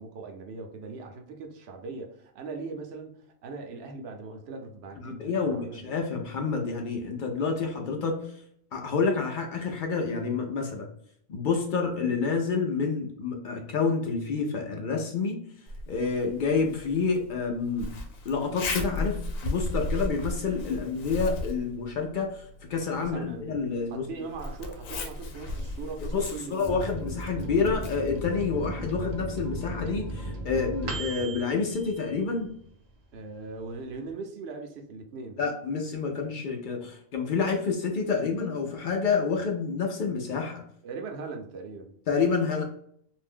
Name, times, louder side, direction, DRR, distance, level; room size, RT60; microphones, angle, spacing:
voice 1, 0.0-5.9 23.0-23.6 23.9-26.7 33.1-35.4 40.8-42.0, right 4 dB, 65° right, 3 dB, 0.8 m, -40 dB
voice 2, 5.0-8.3 8.7-10.9 11.3-15.4 15.9-17.9 18.2-24.1 26.1-32.5 35.4-40.6 42.1-42.6, left 5 dB, 60° left, 2 dB, 0.5 m, -28 dB
Zipper (clothing), 15.7-29.2, left 2 dB, 90° left, 1.0 m, -37 dB
Microwave oven, 26.6-32.7 33.1-33.2 33.5-34.1, right 1 dB, 80° right, 0.3 m, -36 dB
2.6 x 2.1 x 3.5 m, 0.66 s
omnidirectional pair, 1.4 m